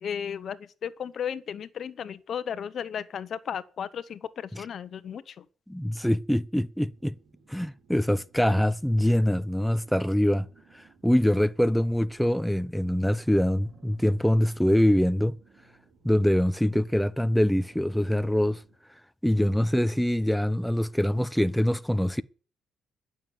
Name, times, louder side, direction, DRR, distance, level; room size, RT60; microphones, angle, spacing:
voice 1, 0.0-5.3, left 8 dB, 60° left, 0.9 m, -34 dB
voice 2, 5.7-7.1 7.5-10.5 10.7-15.4 16.0-18.6 19.2-22.2, equal, ahead, 0.6 m, -24 dB
sound 1, 6.8-18.8, right 4 dB, 60° right, 4.4 m, -59 dB
12.0 x 7.1 x 9.2 m
cardioid pair, 90°, 0 cm